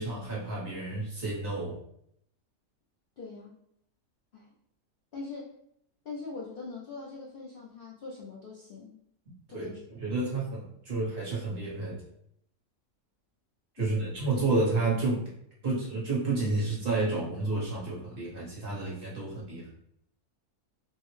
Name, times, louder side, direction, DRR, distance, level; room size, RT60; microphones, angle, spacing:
voice 1, 0.0-1.8 9.5-12.0 13.7-15.3 15.6-19.7, right 3 dB, 40° right, -6 dB, 0.9 m, -30 dB
voice 2, 3.2-3.5 4.3-4.5 5.1-5.5 6.0-9.0 9.5-9.8 10.1-10.2 13.8-14.0, left 3 dB, 75° left, -3 dB, 0.5 m, -42 dB
3.6 x 2.0 x 3.1 m, 0.72 s
omnidirectional pair, 1.6 m